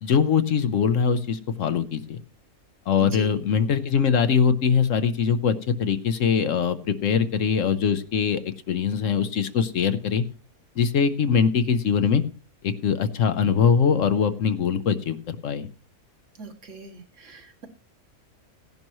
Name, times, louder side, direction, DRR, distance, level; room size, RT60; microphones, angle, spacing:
voice 1, 0.0-2.2 2.9-8.4 8.7-10.2 10.8-12.2 12.6-15.7, left 6 dB, 65° left, 10 dB, 1.1 m, -22 dB
voice 2, 3.0-3.4 16.4-17.7, right 3 dB, 60° right, 4 dB, 1.7 m, -40 dB
16.5 x 11.0 x 3.0 m, 0.36 s
omnidirectional pair, 1.5 m